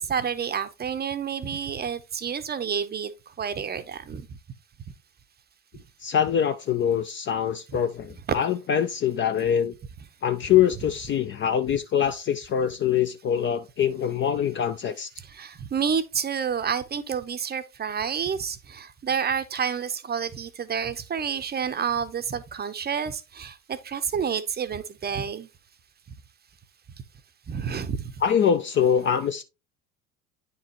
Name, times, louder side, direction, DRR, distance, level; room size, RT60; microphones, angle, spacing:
voice 1, 0.0-3.1 3.4-4.3 8.3-8.4 15.3-25.5 27.5-28.1, right 7 dB, 25° right, 0.7 m, -29 dB
voice 2, 6.0-9.7 10.2-15.1 28.2-29.4, left 8 dB, 30° left, 0.4 m, -24 dB
9.2 x 4.3 x 2.9 m
hypercardioid pair, 70°, 43 cm